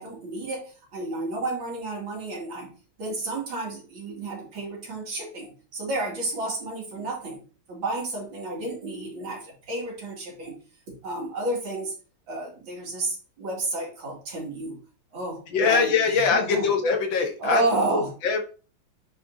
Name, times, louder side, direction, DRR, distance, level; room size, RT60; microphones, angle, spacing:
voice 1, 0.0-2.7 3.0-7.4 7.7-10.6 10.9-11.9 12.3-14.8 15.1-16.7 17.4-18.1, right 2 dB, 65° right, -2 dB, 3.2 m, -31 dB
voice 2, 15.5-17.6 17.9-18.4, left 5 dB, 65° left, 4 dB, 1.8 m, -23 dB
8.8 x 5.5 x 2.7 m, 0.37 s
omnidirectional pair, 2.3 m